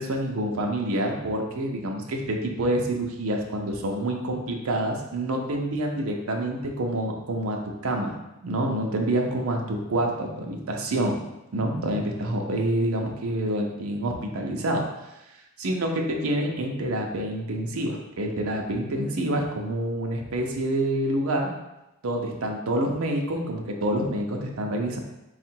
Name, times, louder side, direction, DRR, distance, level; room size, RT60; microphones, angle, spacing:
voice 1, 0.0-7.6 7.8-8.1 8.4-11.1 11.5-14.8 15.6-21.5 22.0-25.0, right 1 dB, 75° right, 2 dB, 0.6 m, -27 dB
3.6 x 2.4 x 4.4 m, 0.95 s
head